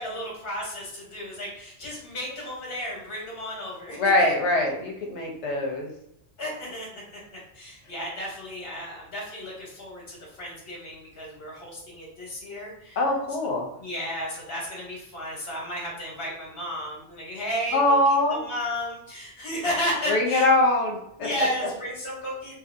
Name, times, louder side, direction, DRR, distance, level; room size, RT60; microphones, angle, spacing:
voice 1, 0.0-4.3 6.4-13.0 13.8-20.5 21.2-22.6, equal, 55° left, -4 dB, 1.3 m, -33 dB
voice 2, 4.0-5.9 13.0-13.7 17.7-18.4 20.1-21.3, left 2 dB, 75° left, 0 dB, 1.0 m, -22 dB
2.7 x 2.5 x 2.5 m, 0.77 s
omnidirectional pair, 1.2 m